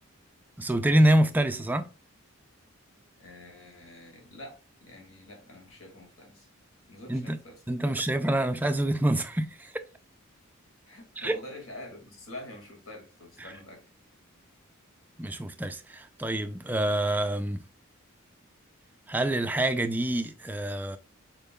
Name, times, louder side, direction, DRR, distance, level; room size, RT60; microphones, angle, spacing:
voice 1, 0.6-1.9 7.1-7.4 7.7-9.7 11.2-11.4 15.2-17.6 19.1-21.0, right 1 dB, 10° right, 0.3 m, -26 dB
voice 2, 3.2-6.5 6.9-8.5 10.9-13.8, left 1 dB, 75° left, 1.9 m, -46 dB
5.2 x 4.4 x 2.2 m
head